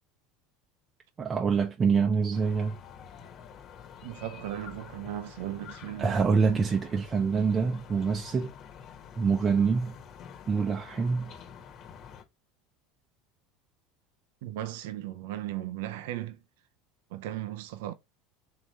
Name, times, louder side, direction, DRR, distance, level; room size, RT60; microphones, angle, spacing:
voice 1, 1.2-2.8 6.0-8.5 9.2-10.0 10.5-11.3, right 5 dB, 30° right, 0.7 m, -26 dB
sound 1, 2.3-12.2, left 7 dB, 50° left, 1.2 m, -48 dB
voice 2, 4.0-6.2 14.4-16.4 17.1-17.9, right 13 dB, 75° right, 0.5 m, -36 dB
3.7 x 2.9 x 4.5 m
hypercardioid pair, 90°, 0 cm